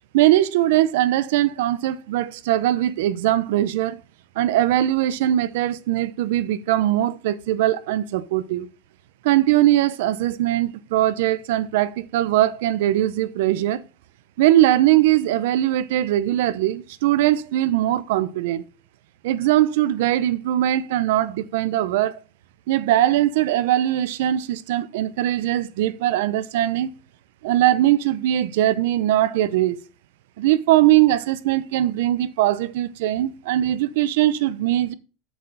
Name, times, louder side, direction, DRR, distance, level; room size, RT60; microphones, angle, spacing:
voice 1, 0.1-4.0 4.4-8.7 9.2-13.8 14.4-18.6 19.2-22.1 22.7-26.9 27.4-29.8 30.4-34.9, right 13 dB, 75° right, 0.6 m, -20 dB
7.6 x 6.8 x 3.9 m
supercardioid pair, 160°, 0 cm